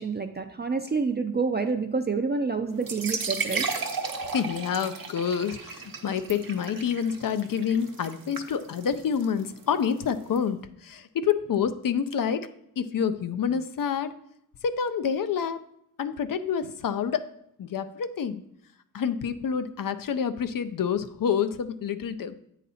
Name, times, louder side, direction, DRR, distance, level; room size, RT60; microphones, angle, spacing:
voice 1, 0.0-3.7, right 4 dB, 30° right, 5 dB, 0.4 m, -28 dB
sound 1, 2.8-10.4, right 4 dB, 70° right, 0.8 m, -35 dB
voice 2, 4.3-12.5 12.8-14.1 14.6-15.6 16.0-17.3 17.6-18.4 18.9-22.4, left 7 dB, 65° left, 11 dB, 0.5 m, -28 dB
8.3 x 4.1 x 4.2 m, 0.73 s
wide cardioid pair, 90°, 36 cm